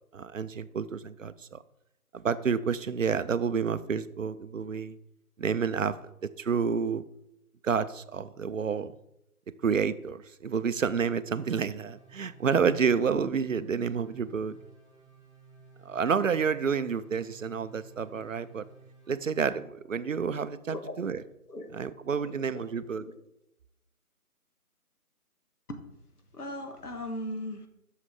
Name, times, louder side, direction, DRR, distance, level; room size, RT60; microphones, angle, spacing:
voice 1, 0.1-1.6 2.1-5.0 5.4-6.0 6.4-7.0 7.6-9.0 9.6-14.6 15.9-18.6 19.1-21.2 21.7-23.0, right 6 dB, 60° right, 14 dB, 0.5 m, -29 dB
sound 1, 11.9-19.1, right 2 dB, 15° right, 2.4 m, -54 dB
voice 2, 20.6-21.7 22.2-22.4 22.9-23.1 25.7-25.8 26.3-27.7, left 1 dB, 80° left, 5 dB, 1.6 m, -39 dB
8.2 x 6.4 x 3.7 m, 0.83 s
figure-of-eight pair, 170°, 45 cm